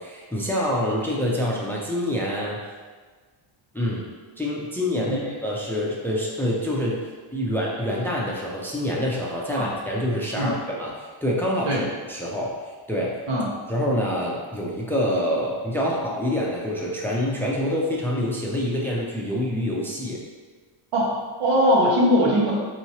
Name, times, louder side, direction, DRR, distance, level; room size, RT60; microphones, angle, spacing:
voice 1, 0.0-2.6 3.7-4.1 4.4-7.0 7.3-11.8 12.1-12.6 12.9-13.2 13.7-20.2, equal, 5° left, -3 dB, 0.4 m, -26 dB
voice 2, 20.9-22.5, equal, 85° right, -5 dB, 1.3 m, -21 dB
4.6 x 3.0 x 2.8 m, 1.4 s
cardioid pair, 115°, 50 cm